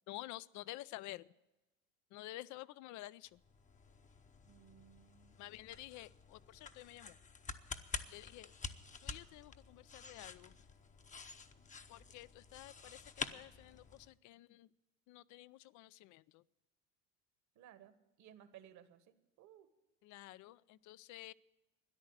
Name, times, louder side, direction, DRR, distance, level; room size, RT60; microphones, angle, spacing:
voice 1, 0.1-1.3 2.1-3.4 5.4-7.2 8.1-8.5 9.0-10.5 11.9-14.7 15.1-16.4 20.0-21.3, left 17 dB, 55° left, 20 dB, 0.6 m, -51 dB
sound 1, 3.3-14.1, left 4 dB, 20° left, 0.9 m, -49 dB
voice 2, 4.4-5.4 17.5-19.7, right 10 dB, 50° right, 11 dB, 1.5 m, -60 dB
13.5 x 10.5 x 8.1 m, 1.0 s
supercardioid pair, 95°, 36 cm